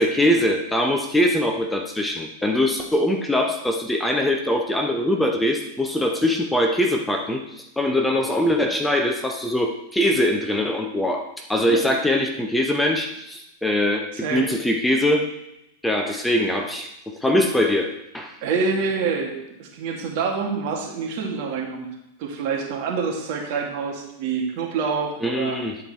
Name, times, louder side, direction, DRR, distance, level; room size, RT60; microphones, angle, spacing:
voice 1, 0.0-15.3 15.8-18.4 25.2-25.8, left 1 dB, 5° left, 3 dB, 0.9 m, -22 dB
voice 2, 14.1-14.5 16.1-16.2 18.4-19.3 19.6-21.9 22.2-25.6, right 5 dB, 55° right, 0 dB, 2.2 m, -26 dB
10.5 x 4.6 x 4.4 m, 0.85 s
hypercardioid pair, 105°, 0 cm